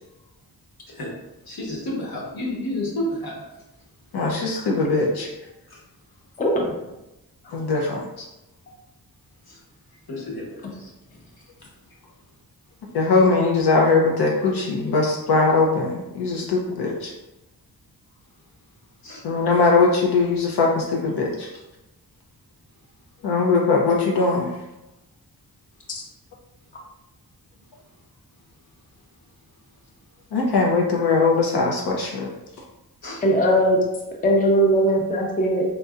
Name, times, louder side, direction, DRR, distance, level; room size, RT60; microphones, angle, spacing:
voice 1, 1.5-3.4 5.7-5.8 9.5-9.6 10.1-10.9 19.0-19.2 33.0-33.2, left 1 dB, 65° left, -3 dB, 1.2 m, -31 dB
voice 2, 4.1-5.3 7.4-8.3 12.9-17.1 19.2-21.5 23.2-24.5 30.3-32.3, left 3 dB, 80° left, -1 dB, 0.6 m, -20 dB
voice 3, 33.2-33.8 34.2-35.6, right 1 dB, 20° left, 0 dB, 0.4 m, -19 dB
4.2 x 2.7 x 2.3 m, 0.96 s
wide cardioid pair, 150°, 39 cm